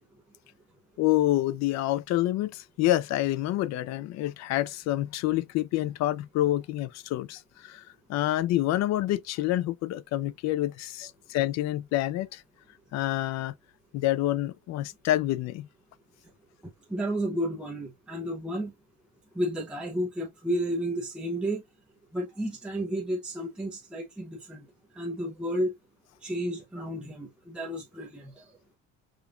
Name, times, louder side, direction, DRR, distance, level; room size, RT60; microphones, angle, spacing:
voice 1, 1.0-7.8 8.1-12.4 12.9-13.5 13.9-15.7, left 15 dB, 55° left, 0.4 m, -27 dB
voice 2, 16.9-18.7 19.3-21.6 22.1-24.7 24.9-25.7 26.2-28.6, equal, 5° right, 0.7 m, -32 dB
5.0 x 2.5 x 2.4 m
cardioid pair, 160°, 32 cm